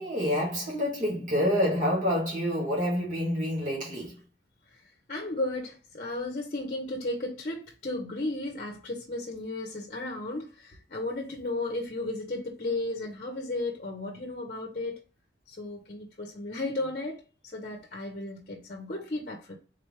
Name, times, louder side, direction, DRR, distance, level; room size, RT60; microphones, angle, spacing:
voice 1, 0.0-4.2, equal, 45° right, 1.9 m, -27 dB
voice 2, 5.1-15.0 15.5-17.2 17.5-19.6, left 2 dB, 45° left, 0.8 m, -34 dB
3.9 x 3.2 x 3.2 m
head